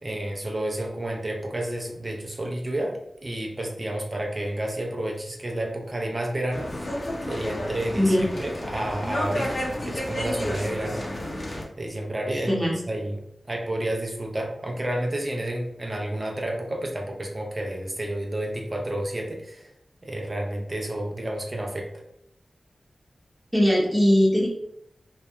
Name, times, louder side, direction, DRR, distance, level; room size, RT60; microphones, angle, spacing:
voice 1, 0.0-6.7 7.3-11.0 11.8-12.5 12.9-13.2 13.5-19.7 20.0-21.9, right 1 dB, 40° right, 1 dB, 0.5 m, -30 dB
sound 1, 6.5-11.6, left 1 dB, 50° left, 0.6 m, -31 dB
voice 2, 12.3-12.8 23.5-24.5, equal, 10° right, -4 dB, 0.8 m, -20 dB
2.3 x 2.1 x 2.9 m, 0.77 s
cardioid pair, 45°, 0 cm